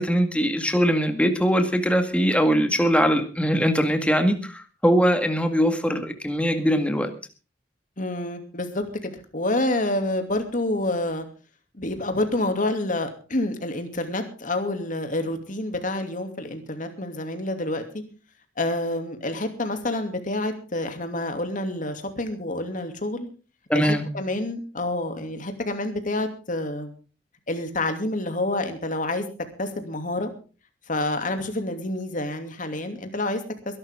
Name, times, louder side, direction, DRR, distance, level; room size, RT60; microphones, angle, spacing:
voice 1, 0.0-7.1 23.7-24.1, equal, 5° left, 7 dB, 1.9 m, -21 dB
voice 2, 8.0-11.2 11.7-18.0 18.6-23.3 23.7-26.9 27.5-29.2 29.6-30.3 30.9-33.8, left 1 dB, 45° left, 6 dB, 2.7 m, -28 dB
22.0 x 12.0 x 3.7 m, 0.36 s
head